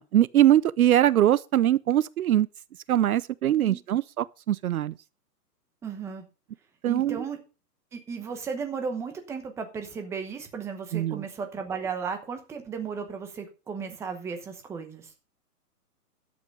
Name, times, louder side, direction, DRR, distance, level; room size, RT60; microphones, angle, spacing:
voice 1, 0.0-2.5 2.9-4.9 6.8-7.2 10.9-11.2, right 12 dB, 60° right, 0.6 m, -22 dB
voice 2, 3.5-3.8 5.8-6.2 6.9-7.4 7.9-15.1, right 5 dB, 5° right, 0.9 m, -35 dB
11.5 x 8.0 x 5.4 m
hypercardioid pair, 155°, 48 cm